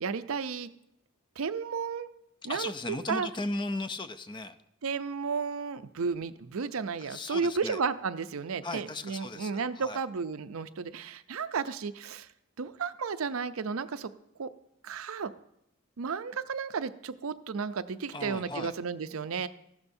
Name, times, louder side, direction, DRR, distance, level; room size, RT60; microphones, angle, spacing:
voice 1, 0.0-0.7 1.4-2.1 2.4-3.3 4.8-12.3 12.6-14.1 14.4-14.5 14.8-15.3 16.0-19.5, right 5 dB, 75° right, 11 dB, 0.5 m, -33 dB
voice 2, 2.5-4.6 7.0-7.8 8.6-10.0 18.1-18.7, left 2 dB, 20° left, 11 dB, 0.5 m, -36 dB
14.5 x 12.5 x 2.7 m, 0.78 s
head